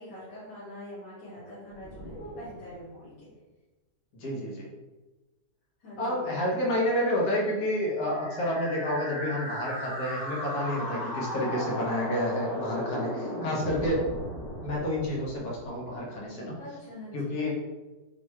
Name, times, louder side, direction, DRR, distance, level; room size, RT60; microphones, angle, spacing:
voice 1, 0.0-3.3 5.8-6.2 16.6-17.4, left 1 dB, 85° left, -10 dB, 1.8 m, -43 dB
sound 1, 1.7-3.3, right 1 dB, 50° right, 0.9 m, -48 dB
voice 2, 4.1-4.7 6.0-14.1 14.6-16.6 17.1-17.6, left 1 dB, 65° left, -3 dB, 1.5 m, -29 dB
sound 2, 8.1-16.0, equal, 25° left, 1.2 m, -36 dB
4.5 x 2.3 x 4.5 m, 1.2 s
omnidirectional pair, 1.8 m